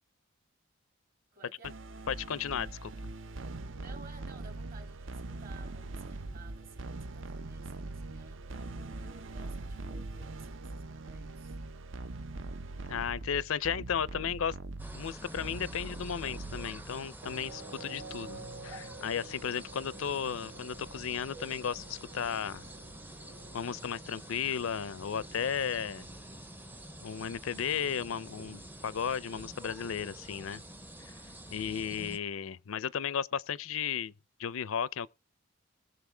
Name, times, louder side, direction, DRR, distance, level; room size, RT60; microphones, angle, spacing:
voice 1, 1.3-1.8 3.8-11.6, right 4 dB, 45° right, 2.4 m, -56 dB
sound 1, 1.6-17.1, right 2 dB, 65° right, 0.6 m, -42 dB
voice 2, 2.1-2.9 12.9-14.6 14.9-22.6 23.5-26.1 27.0-30.6 31.0-31.2 31.5-34.1 34.4-35.1, left 7 dB, 75° left, 0.5 m, -34 dB
sound 2, 14.8-32.2, right 1 dB, 10° right, 0.6 m, -48 dB
sound 3, 17.2-30.2, right 3 dB, 85° right, 1.5 m, -52 dB
20.5 x 6.8 x 3.4 m
head